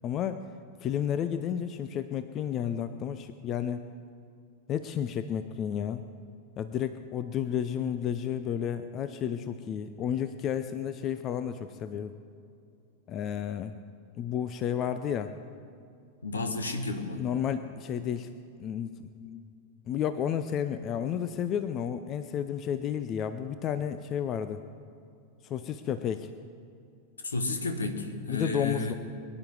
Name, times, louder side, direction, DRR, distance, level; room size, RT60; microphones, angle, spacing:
voice 1, 0.0-0.4 0.8-3.9 4.7-6.1 6.6-12.1 13.1-13.8 14.2-15.3 17.1-18.3 18.6-19.5 19.9-24.6 25.4-26.3 28.3-28.9, left 9 dB, 30° left, 11 dB, 0.6 m, -32 dB
voice 2, 16.2-17.2 27.2-28.9, left 3 dB, 75° left, 6 dB, 1.5 m, -32 dB
23.0 x 11.0 x 4.8 m, 2.5 s
figure-of-eight pair, 90°, 0 cm